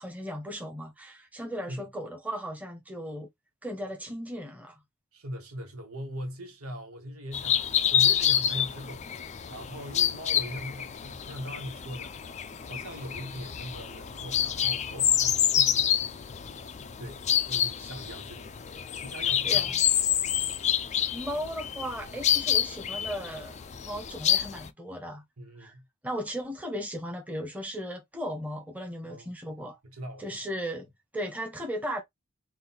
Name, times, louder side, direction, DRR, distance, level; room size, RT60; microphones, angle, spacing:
voice 1, 0.0-3.3 3.6-4.8 19.4-19.7 21.1-23.6 23.8-25.2 25.6-25.7 26.0-29.8 30.2-32.0, equal, 5° right, 1.2 m, -36 dB
voice 2, 5.1-9.1 9.5-12.1 12.6-16.4 17.0-18.6 19.0-19.6 25.4-25.8 29.0-29.3 29.8-30.5, equal, 80° right, 1.5 m, -41 dB
sound 1, 7.3-24.7, left 10 dB, 30° left, 0.4 m, -28 dB
3.8 x 2.6 x 4.1 m
head